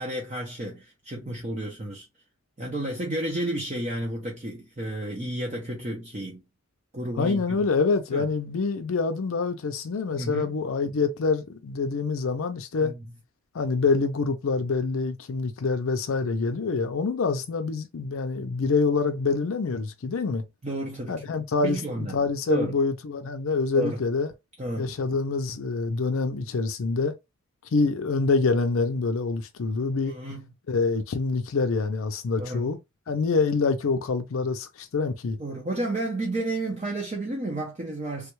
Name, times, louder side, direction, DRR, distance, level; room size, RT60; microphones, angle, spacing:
voice 1, 0.0-2.1 2.6-6.4 6.9-7.4 8.1-8.3 10.1-10.5 12.8-13.0 20.6-21.2 21.6-22.2 22.5-22.7 23.7-24.0 24.6-24.9 30.0-30.5 32.4-32.7 35.4-38.3, right 1 dB, 30° right, 0.6 m, -31 dB
voice 2, 7.1-12.9 13.5-20.4 21.1-24.3 24.8-27.1 27.7-30.1 30.7-32.8 33.1-35.4, left 4 dB, 70° left, 0.5 m, -26 dB
3.4 x 2.3 x 3.0 m
head